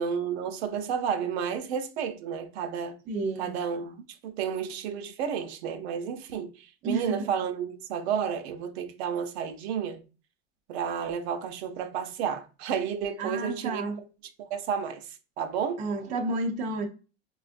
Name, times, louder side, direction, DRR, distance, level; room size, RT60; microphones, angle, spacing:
voice 1, 0.0-3.0 3.4-4.0 4.2-10.0 10.7-13.8 14.4-15.1 15.4-15.8, right 7 dB, 75° right, 0.7 m, -31 dB
voice 2, 3.1-3.5 6.8-7.3 13.2-14.0 15.8-16.9, right 2 dB, 25° right, 0.4 m, -31 dB
5.7 x 2.4 x 2.5 m
supercardioid pair, 155°, 32 cm